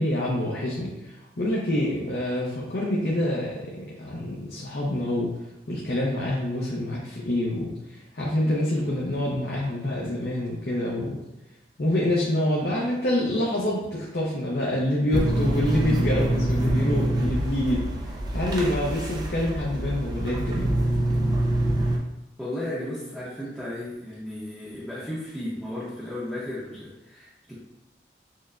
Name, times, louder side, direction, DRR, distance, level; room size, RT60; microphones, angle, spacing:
voice 1, 0.0-5.3 5.7-11.2 11.8-17.8 18.3-20.7, left 1 dB, 65° left, -4 dB, 0.6 m, -26 dB
sound 1, 15.1-22.0, right 1 dB, 25° right, 0.4 m, -25 dB
voice 2, 22.4-27.5, left 1 dB, ahead, -11 dB, 0.8 m, -34 dB
6.4 x 2.2 x 2.4 m, 0.96 s
head